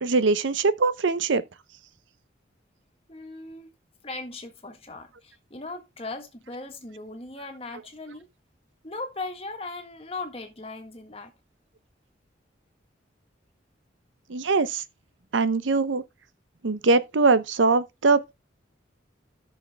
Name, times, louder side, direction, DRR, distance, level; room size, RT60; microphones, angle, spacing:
voice 1, 0.0-1.4 14.3-14.8 15.3-16.0 16.6-18.3, right 3 dB, 80° right, 0.7 m, -22 dB
voice 2, 3.1-3.7 4.0-8.3 8.8-11.3, left 3 dB, 30° left, 1.6 m, -38 dB
14.5 x 6.4 x 2.2 m
head